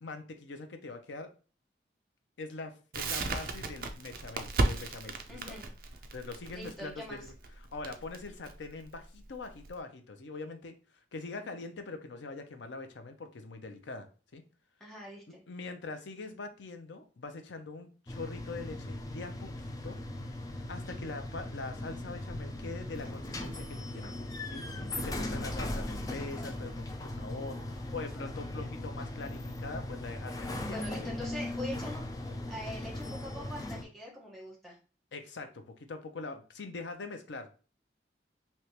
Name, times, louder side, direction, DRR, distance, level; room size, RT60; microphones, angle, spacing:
voice 1, 0.0-1.3 2.4-5.6 6.1-7.3 7.7-10.7 11.1-14.1 14.3-14.4 15.5-20.0 20.7-24.1 24.5-31.1 35.1-37.5, left 3 dB, 80° left, 7 dB, 0.6 m, -43 dB
Crackle, 2.9-9.7, right 3 dB, 50° right, 0.5 m, -35 dB
voice 2, 5.3-5.7 6.5-7.2 14.8-15.4 30.6-34.8, left 1 dB, ahead, -5 dB, 1.1 m, -43 dB
sound 1, 18.1-33.8, left 1 dB, 20° left, 0.3 m, -38 dB
3.3 x 2.9 x 2.8 m, 0.36 s
head